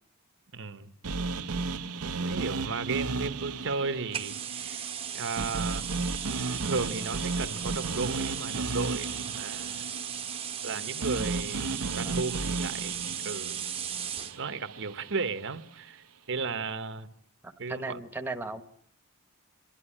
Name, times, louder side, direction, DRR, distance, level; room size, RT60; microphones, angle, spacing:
voice 1, 0.5-0.9 2.2-5.9 6.6-9.9 10.6-11.7 12.0-13.6 14.4-17.1 17.6-18.0, right 4 dB, 55° right, 1.1 m, -35 dB
sound 1, 1.0-15.2, right 3 dB, 80° right, 0.9 m, -34 dB
sound 2, 4.1-14.4, right 8 dB, 25° right, 1.0 m, -37 dB
voice 2, 17.4-18.6, right 3 dB, 10° right, 1.2 m, -37 dB
28.0 x 11.5 x 10.0 m
head